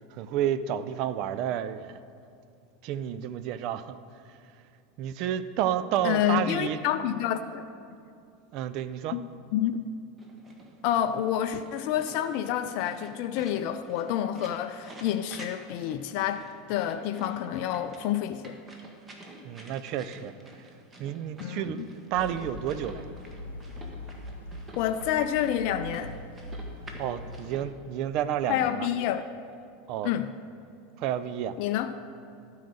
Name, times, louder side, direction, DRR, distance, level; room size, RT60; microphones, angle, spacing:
voice 1, 0.1-2.0 2.8-4.0 5.0-6.8 8.5-9.1 19.4-20.3 21.0-23.1 27.0-28.9 29.9-30.1 31.0-31.5, right 10 dB, 50° right, 0.4 m, -30 dB
voice 2, 6.0-7.6 9.1-9.2 9.5-9.9 10.8-18.6 21.4-21.9 24.8-26.2 28.5-29.2 30.0-30.3 31.6-32.0, left 10 dB, 50° left, 0.4 m, -28 dB
sound 1, 10.2-27.6, right 1 dB, 20° right, 1.3 m, -49 dB
sound 2, 22.1-27.6, left 1 dB, 75° left, 0.8 m, -42 dB
12.5 x 4.7 x 6.5 m
figure-of-eight pair, 80°, 0 cm